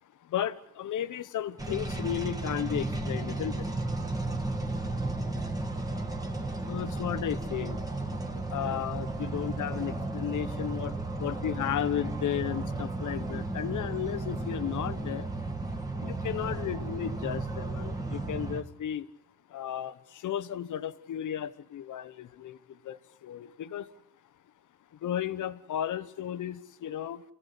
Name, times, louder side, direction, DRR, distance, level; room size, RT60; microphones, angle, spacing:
voice 1, 0.2-3.7 6.7-7.8 8.5-15.3 16.0-19.1 19.5-23.9 25.0-27.2, left 10 dB, 50° left, 14 dB, 1.2 m, -34 dB
sound 1, 1.6-18.6, right 2 dB, 10° right, 2.2 m, -34 dB
28.5 x 16.5 x 8.4 m, 0.82 s
cardioid pair, 160°, 38 cm